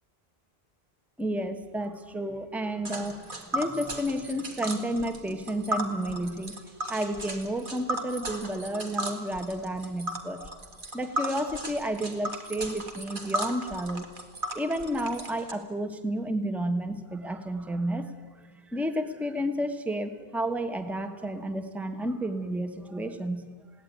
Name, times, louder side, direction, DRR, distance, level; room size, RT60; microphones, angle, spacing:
voice 1, 1.2-6.6 6.9-10.6 10.9-14.1 14.5-18.1 18.7-23.5, right 1 dB, ahead, 8 dB, 1.2 m, -31 dB
Tick, 2.8-15.5, right 1 dB, 55° right, 2.2 m, -35 dB
20.5 x 17.0 x 9.4 m, 1.5 s
omnidirectional pair, 1.0 m